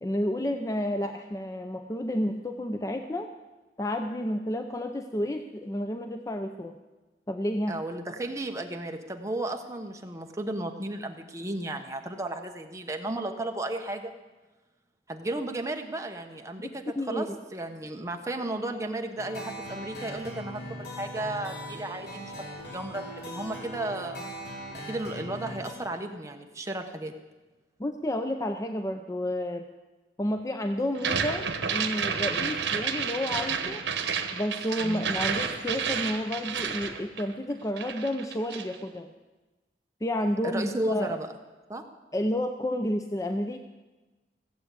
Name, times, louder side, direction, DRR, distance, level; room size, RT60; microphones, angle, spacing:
voice 1, 0.0-3.3 3.8-6.8 7.3-7.8 16.6-17.3 27.8-29.6 30.2-33.8 34.3-39.1 40.0-41.2 42.1-43.6, left 1 dB, 20° left, 6 dB, 0.5 m, -30 dB
voice 2, 7.7-14.1 15.1-24.2 24.9-27.1 34.8-35.1 40.4-41.3 41.7-41.8, right 1 dB, 15° right, 4 dB, 1.1 m, -34 dB
sound 1, 19.2-25.7, equal, 65° left, 3.2 m, -40 dB
sound 2, 31.0-37.5 37.8-38.8, right 6 dB, 85° right, 1.2 m, -30 dB
15.5 x 7.7 x 8.3 m, 1.2 s
head